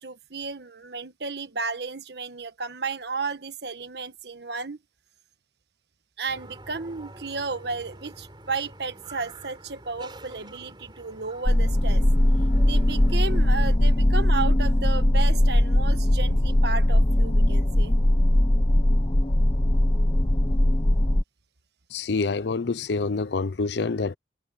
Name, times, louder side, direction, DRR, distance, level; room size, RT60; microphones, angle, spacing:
voice 1, 0.0-4.8 6.2-12.0 12.6-17.9, right 4 dB, 65° right, 1.4 m, -33 dB
sound 1, 6.3-13.6, right 1 dB, 25° right, 6.6 m, -46 dB
sound 2, 11.5-21.2, left 1 dB, 30° left, 1.0 m, -20 dB
voice 2, 21.9-24.2, left 4 dB, 70° left, 0.6 m, -26 dB
head